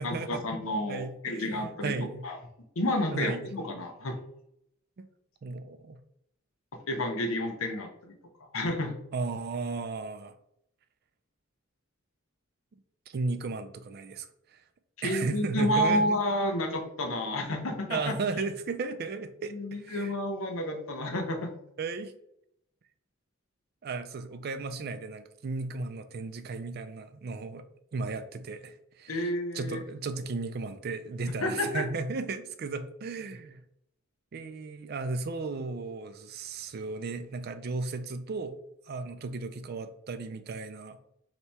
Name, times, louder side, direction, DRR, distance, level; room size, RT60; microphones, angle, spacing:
voice 1, 0.0-1.9 2.2-2.4 2.8-4.2 6.9-8.1 8.5-9.0 15.0-18.1 19.5-21.5 29.1-29.8 31.4-31.8, left 1 dB, 75° left, 4 dB, 0.8 m, -30 dB
voice 2, 0.9-2.2 3.1-3.4 5.0-5.1 5.4-6.0 9.1-10.3 13.1-14.3 14.5-14.6 15.0-16.2 17.9-20.1 21.8-22.1 23.8-27.6 27.9-33.6 34.3-38.6 38.9-41.0, right 3 dB, 45° right, 10 dB, 0.3 m, -35 dB
3.4 x 2.9 x 4.1 m, 0.75 s
head